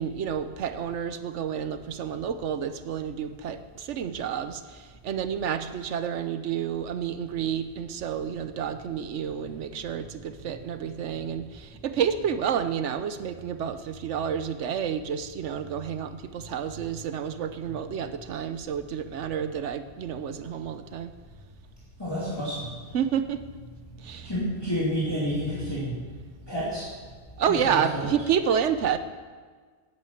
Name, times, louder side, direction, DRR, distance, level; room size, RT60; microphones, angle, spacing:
voice 1, 0.0-21.1 22.9-23.5 24.0-24.3 27.4-29.0, right 8 dB, 75° right, 11 dB, 1.0 m, -29 dB
voice 2, 22.0-22.7 23.9-26.0 26.4-26.9 27.6-28.1, equal, 20° left, -9 dB, 2.5 m, -30 dB
9.5 x 8.6 x 7.1 m, 1.5 s
omnidirectional pair, 1.2 m